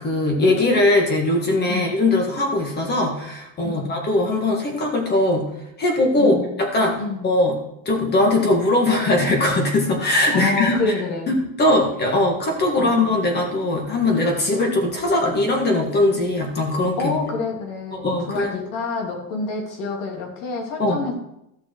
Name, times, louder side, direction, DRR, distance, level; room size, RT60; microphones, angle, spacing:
voice 1, 0.0-5.5 5.8-7.6 7.9-10.8 11.3-17.2 18.0-18.5 20.8-21.0, left 2 dB, 25° left, 2 dB, 2.0 m, -20 dB
voice 2, 3.6-4.0 6.1-6.5 7.0-7.4 10.3-11.3 12.7-13.0 17.0-21.1, left 4 dB, 75° left, 1 dB, 3.2 m, -28 dB
14.0 x 5.9 x 4.7 m, 0.82 s
cardioid pair, 175°, 39 cm